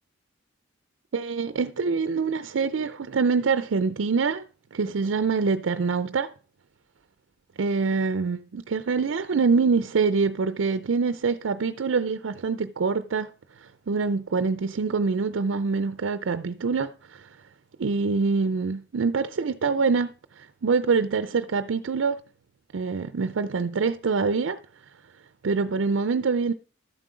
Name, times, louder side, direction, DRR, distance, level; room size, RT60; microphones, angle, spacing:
voice 1, 1.1-4.4 4.7-6.3 7.6-13.3 13.6-17.4 17.8-22.2 22.7-24.9 25.4-26.5, right 4 dB, 85° right, 0.5 m, -25 dB
12.5 x 7.6 x 4.9 m
head